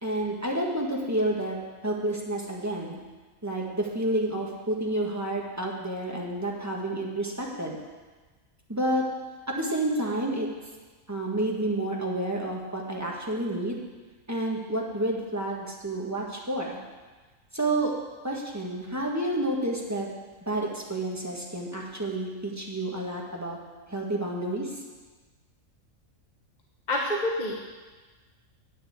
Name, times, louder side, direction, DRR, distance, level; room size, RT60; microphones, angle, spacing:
voice 1, 0.0-1.6 1.8-3.0 3.4-7.8 8.7-9.0 9.5-10.5 11.1-13.8 14.3-16.8 17.5-17.9 18.2-20.1 20.5-23.6 23.9-24.7, right 1 dB, 10° right, -2 dB, 1.5 m, -29 dB
voice 2, 26.9-27.5, left 1 dB, 35° left, -1 dB, 1.1 m, -27 dB
9.1 x 6.5 x 8.5 m, 1.3 s
omnidirectional pair, 1.5 m